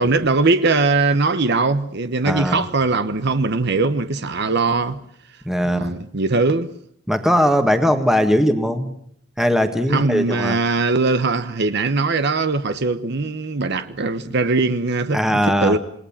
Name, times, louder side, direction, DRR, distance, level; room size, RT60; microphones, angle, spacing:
voice 1, 0.0-5.0 5.6-6.7 9.9-15.8, right 3 dB, 55° right, 1.0 m, -20 dB
voice 2, 2.2-2.6 5.4-5.9 7.1-8.9 9.4-10.6 15.1-15.8, equal, ahead, 1.6 m, -19 dB
27.5 x 19.5 x 7.4 m
head